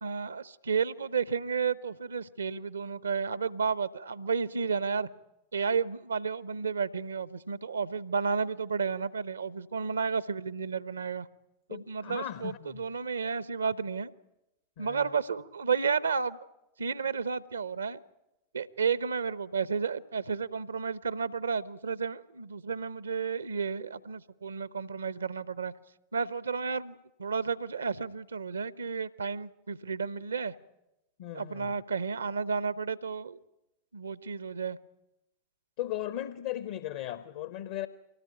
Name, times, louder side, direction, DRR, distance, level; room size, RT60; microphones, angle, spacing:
voice 1, 0.0-5.1 5.5-11.3 11.7-14.1 14.8-16.4 16.8-18.0 18.5-25.7 26.1-30.5 31.3-33.4 33.9-34.8, right 5 dB, 75° right, 0.8 m, -32 dB
voice 2, 11.7-12.8 14.8-15.1 31.2-31.7 35.8-37.9, left 12 dB, 55° left, 0.9 m, -37 dB
24.5 x 18.0 x 9.2 m
figure-of-eight pair, 90°, 0 cm